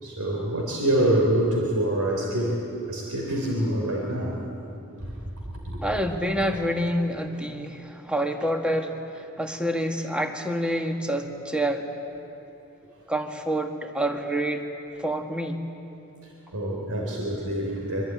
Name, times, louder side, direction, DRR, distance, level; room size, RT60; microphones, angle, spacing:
voice 1, 0.0-2.6 2.9-4.4 5.0-5.1 5.6-5.8 16.5-18.0, right 1 dB, 80° right, -1 dB, 3.6 m, -25 dB
voice 2, 5.8-11.9 13.1-14.7 15.0-15.6, equal, 5° right, 4 dB, 1.7 m, -27 dB
25.0 x 24.5 x 9.6 m, 2.8 s
head